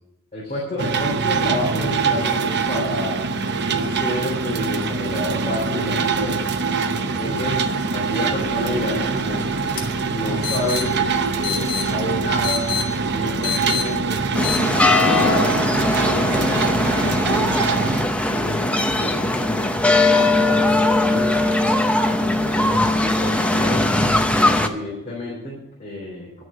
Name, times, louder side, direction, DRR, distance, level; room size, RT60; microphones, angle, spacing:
voice 1, 0.3-3.2 3.7-6.5 7.2-7.6 7.9-9.8 10.1-11.0 11.4-12.7 13.0-14.2 14.9-17.1 18.3-21.5 22.0-23.9 24.2-26.4, left 1 dB, 30° left, -5 dB, 3.3 m, -30 dB
sound 1, 0.8-18.0, right 4 dB, 50° right, 0.8 m, -24 dB
sound 2, 8.3-14.6, left 8 dB, 75° left, 2.4 m, -31 dB
sound 3, 14.3-24.7, left 2 dB, 5° left, 0.8 m, -19 dB
11.0 x 6.4 x 9.3 m, 0.92 s
head